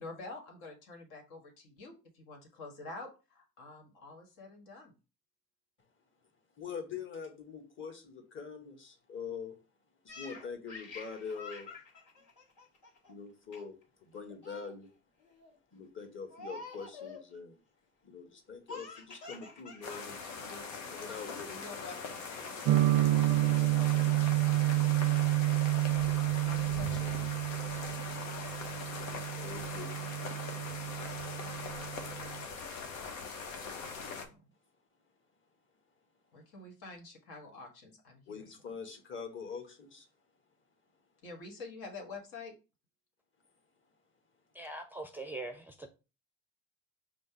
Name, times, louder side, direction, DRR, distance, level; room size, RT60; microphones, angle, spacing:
voice 1, 0.0-4.9 21.5-25.3 25.9-27.3 33.8-34.4 36.3-38.7 41.2-42.5, left 3 dB, 70° left, 1.5 m, -48 dB
voice 2, 6.6-9.6 10.0-11.7 13.1-14.9 15.7-17.6 18.0-21.7 29.3-29.9 30.6-30.9 38.3-40.1, left 5 dB, 30° left, 1.3 m, -44 dB
Laughter, 10.1-13.1 13.5-13.8 14.1-14.8 15.2-15.6 16.3-17.3 18.7-20.0 20.3-20.4 21.0-21.5, left 3 dB, 50° left, 1.9 m, -48 dB
sound 1, 19.8-34.3, left 5 dB, 85° left, 0.8 m, -41 dB
sound 2, 22.6-32.4, right 16 dB, 55° right, 0.5 m, -30 dB
voice 3, 44.5-45.9, right 2 dB, 5° right, 0.5 m, -42 dB
5.1 x 2.0 x 4.6 m
hypercardioid pair, 60°, 39 cm